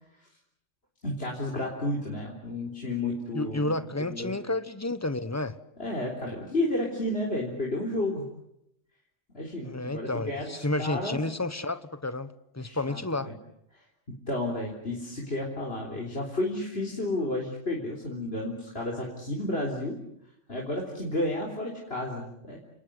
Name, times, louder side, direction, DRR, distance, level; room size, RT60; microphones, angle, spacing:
voice 1, 1.0-3.7 4.0-4.3 5.8-8.2 9.3-11.2 12.6-13.3 14.3-20.0 20.5-22.6, left 1 dB, 55° left, 0 dB, 4.2 m, -32 dB
voice 2, 3.3-5.6 9.6-13.3, left 2 dB, 15° left, 13 dB, 1.2 m, -31 dB
30.0 x 19.5 x 7.9 m, 0.78 s
omnidirectional pair, 1.3 m